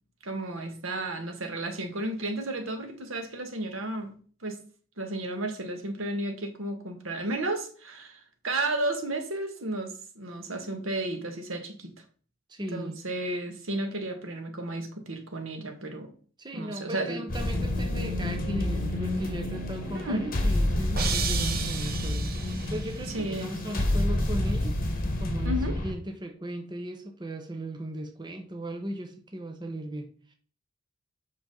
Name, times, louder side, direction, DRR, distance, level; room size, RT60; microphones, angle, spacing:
voice 1, 0.2-4.1 4.4-4.6 5.0-11.9 12.7-16.1 16.5-17.2 19.9-20.2 23.1-23.5 25.4-25.8, right 1 dB, 80° right, 1.6 m, -33 dB
voice 2, 12.5-13.0 16.4-24.8 25.2-30.3, right 1 dB, 20° right, 0.9 m, -37 dB
sound 1, 17.3-25.9, left 1 dB, 45° left, 1.4 m, -29 dB
sound 2, 21.0-23.0, right 7 dB, 50° right, 1.0 m, -33 dB
7.8 x 5.8 x 3.9 m
head